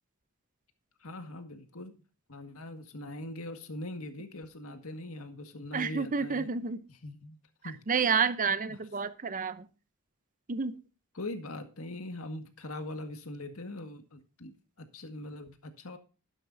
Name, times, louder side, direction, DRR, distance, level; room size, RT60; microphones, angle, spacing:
voice 1, 1.0-2.0 2.3-6.5 7.0-7.4 7.6-8.2 11.1-16.0, left 1 dB, 80° left, 7 dB, 1.8 m, -42 dB
voice 2, 5.7-6.8 7.9-9.7 10.5-10.8, right 5 dB, 40° right, 14 dB, 0.7 m, -29 dB
12.5 x 11.0 x 2.7 m, 0.33 s
head